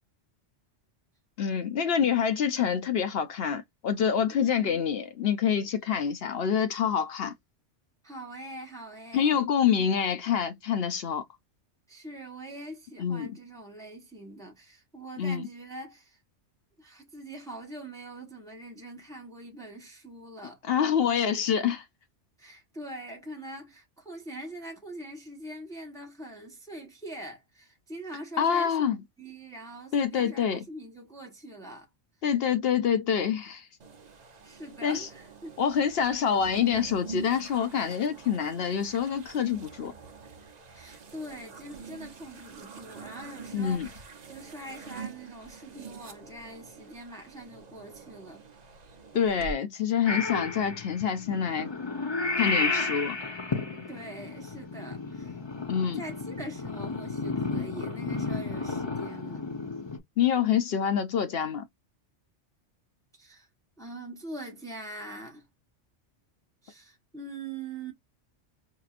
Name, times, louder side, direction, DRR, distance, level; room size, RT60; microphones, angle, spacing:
voice 1, 1.4-7.3 9.1-11.2 13.0-13.3 15.2-15.5 20.6-21.8 28.4-29.0 29.9-30.6 32.2-33.7 34.8-35.1 35.6-39.9 43.5-43.9 49.1-51.7 52.4-53.2 55.7-56.0 60.2-61.7, left 8 dB, 60° left, 0.8 m, -26 dB
voice 2, 4.3-4.9 8.0-9.4 11.9-16.2 16.8-20.6 22.4-28.9 29.2-31.9 34.4-35.5 40.7-48.4 53.9-55.4 55.9-59.5 63.1-63.5 63.8-65.5 66.6-67.9, right 1 dB, 5° left, 1.1 m, -43 dB
sound 1, 33.8-49.5, right 5 dB, 45° right, 0.7 m, -45 dB
Purr / Meow, 50.1-60.0, left 3 dB, 25° left, 0.8 m, -32 dB
4.5 x 2.9 x 2.4 m
omnidirectional pair, 1.2 m